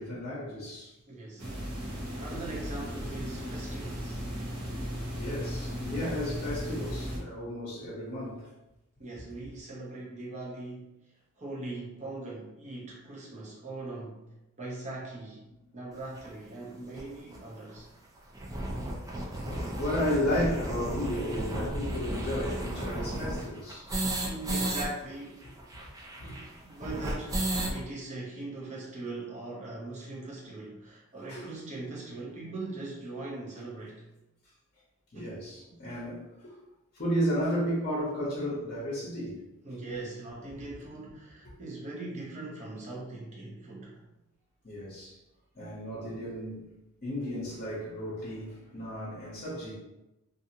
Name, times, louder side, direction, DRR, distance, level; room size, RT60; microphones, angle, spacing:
voice 1, 0.0-0.9 5.1-8.5 19.4-23.9 26.2-26.4 31.3-31.5 35.1-36.6 36.9-39.6 41.4-41.5 44.6-45.2 45.5-46.6 47.0-49.7, equal, 45° left, -7 dB, 0.8 m, -33 dB
voice 2, 1.1-1.7 2.2-4.2 9.0-10.9 11.4-17.9 24.2-25.4 26.2-34.0 35.1-35.3 39.6-44.0, right 2 dB, 30° right, -4 dB, 0.7 m, -41 dB
sound 1, 1.4-7.2, equal, 70° right, 0.7 m, -36 dB
sound 2, 16.2-16.3 17.0-17.1 17.3-17.4 17.7-17.8 18.2-24.9 25.1-25.2 25.4-27.8, right 1 dB, 15° right, 0.3 m, -33 dB
2.6 x 2.4 x 2.7 m, 0.95 s
head